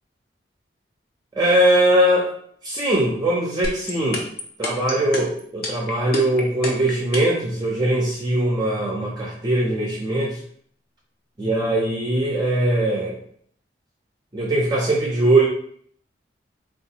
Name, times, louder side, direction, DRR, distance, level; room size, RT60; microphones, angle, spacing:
voice 1, 1.4-2.3 2.6-4.2 4.6-10.4 11.4-13.2 14.3-15.5, right 1 dB, 25° right, -3 dB, 0.4 m, -21 dB
sound 1, 3.6-7.4, left 2 dB, 55° left, 0.7 m, -27 dB
3.7 x 2.3 x 2.7 m, 0.63 s
head